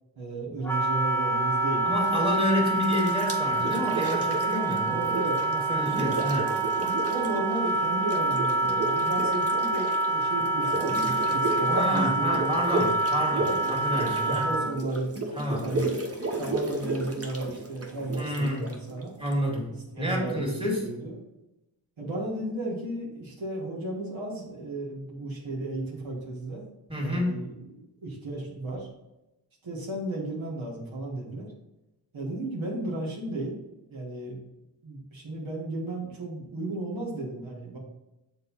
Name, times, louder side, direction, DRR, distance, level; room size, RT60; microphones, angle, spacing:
voice 1, 0.2-1.9 4.8-6.1 7.1-12.6 13.5-13.7 14.2-15.1 15.6-19.2 19.9-21.2 22.0-26.6 26.9-28.9 29.6-31.5 32.1-33.6 33.9-34.4 34.8-37.8, right 2 dB, 85° right, -4 dB, 1.8 m, -34 dB
Wind instrument woodwind instrument, 0.6-14.7, right 2 dB, 5° left, 0.7 m, -27 dB
voice 2, 1.8-5.0 5.4-6.5 11.7-14.5 15.3-15.7 18.2-18.7 19.2-20.8 26.9-27.3, left 1 dB, 10° right, -2 dB, 2.2 m, -29 dB
sound 1, 2.0-2.4 2.8-5.5 5.8-7.6 7.8-19.3, right 2 dB, 30° right, 1.0 m, -33 dB
6.7 x 3.9 x 4.1 m, 0.96 s
wide cardioid pair, 60°, 47 cm